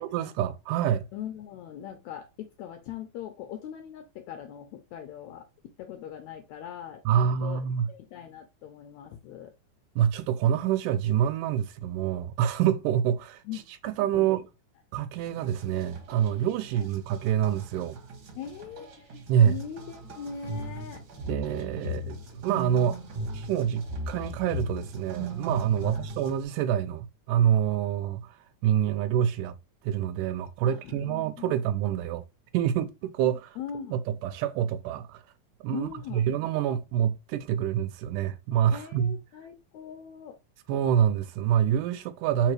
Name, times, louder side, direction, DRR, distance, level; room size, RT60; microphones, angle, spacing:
voice 1, 0.0-1.1 7.1-7.9 10.0-13.4 13.8-14.4 14.9-18.0 19.3-19.6 21.2-23.0 23.3-29.6 29.8-32.2 32.5-33.5 33.9-35.2 35.6-39.1 40.7-42.5, right 9 dB, 80° right, 2.0 m, -26 dB
voice 2, 1.1-9.5 13.4-14.4 16.7-16.9 18.3-19.2 19.4-21.0 21.9-22.0 25.8-26.0 30.6-31.5 33.2-34.0 35.7-36.2 38.7-40.4, left 8 dB, 80° left, 1.6 m, -41 dB
sound 1, 15.2-26.4, right 1 dB, 60° right, 1.4 m, -38 dB
4.7 x 3.3 x 3.1 m
omnidirectional pair, 3.9 m